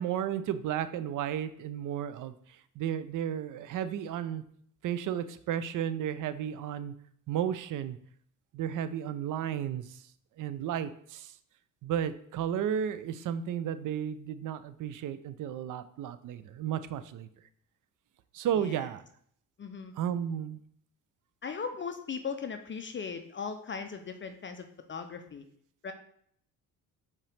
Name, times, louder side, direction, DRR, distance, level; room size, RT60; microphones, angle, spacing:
voice 1, 0.0-2.3 2.8-4.4 4.8-6.9 7.3-8.0 8.5-9.8 10.4-11.3 11.8-17.3 18.3-19.0 20.0-20.6, right 9 dB, 50° right, 13 dB, 0.4 m, -33 dB
voice 2, 18.6-18.9 19.6-19.9 21.4-25.4 25.8-25.9, left 5 dB, 30° left, 7 dB, 0.4 m, -38 dB
4.5 x 2.9 x 3.2 m, 0.65 s
supercardioid pair, 60°, 43 cm